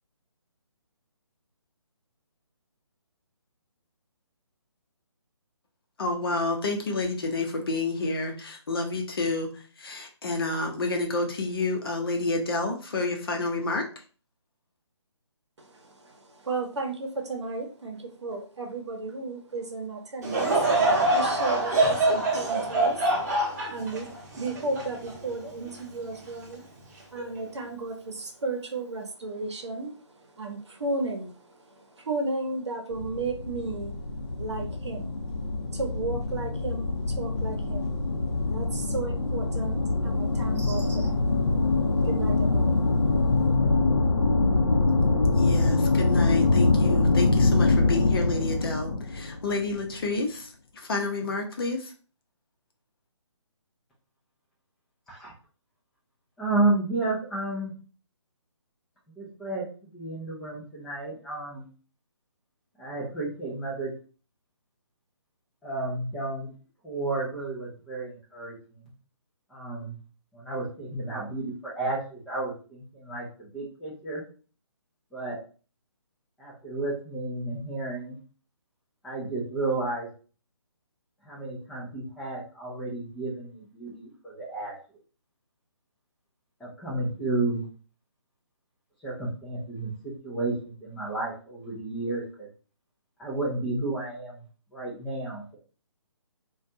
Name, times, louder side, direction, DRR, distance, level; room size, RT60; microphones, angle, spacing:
voice 1, 6.0-13.8 45.4-51.9, left 3 dB, 50° left, 3 dB, 0.7 m, -29 dB
voice 2, 15.6-20.6 21.1-34.0 34.4-35.2 35.7-43.5, right 3 dB, 65° right, 3 dB, 0.8 m, -35 dB
Laughter / Crowd, 20.2-25.7 26.2-26.3 27.1-27.4, right 2 dB, 35° right, 0.7 m, -25 dB
sound 1, 32.9-49.9, left 3 dB, 90° left, 0.6 m, -24 dB
voice 3, 56.4-57.7 59.2-61.7 62.8-63.9 65.6-66.5 66.8-68.9 69.5-70.0 70.3-74.2 75.1-75.4 76.4-78.2 79.0-80.1 81.2-84.7 86.6-87.6 89.0-92.5 93.2-94.4 94.7-95.6, right 2 dB, ahead, -6 dB, 0.3 m, -32 dB
2.5 x 2.2 x 2.6 m, 0.37 s
figure-of-eight pair, 145°, 15 cm